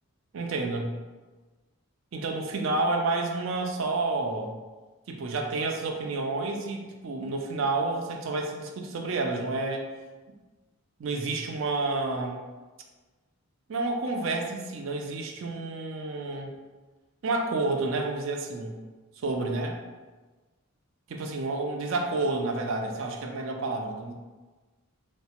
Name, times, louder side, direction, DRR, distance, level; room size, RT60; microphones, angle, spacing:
voice 1, 0.3-1.0 2.1-4.6 5.1-9.9 11.0-12.4 13.7-16.5 17.2-18.8 19.2-19.8 21.1-24.1, right 3 dB, 60° right, 3 dB, 0.4 m, -30 dB
3.1 x 2.0 x 2.8 m, 1.3 s
head